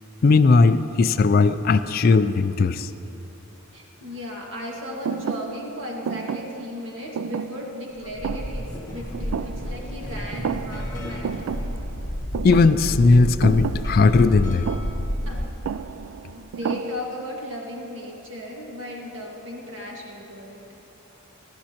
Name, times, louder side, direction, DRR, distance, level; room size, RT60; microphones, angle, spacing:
voice 1, 0.2-2.9 12.4-14.7, left 3 dB, 45° left, 11 dB, 0.3 m, -17 dB
voice 2, 3.7-11.7 15.3-15.6 16.4-20.6, left 1 dB, 60° right, -2 dB, 1.9 m, -36 dB
Thump thud, 5.0-10.1 10.3-11.0 11.2-17.4, right 7 dB, 75° right, 0.3 m, -32 dB
sound 1, 8.0-15.5, equal, 20° left, 1.4 m, -31 dB
22.0 x 11.5 x 2.9 m, 3.0 s
head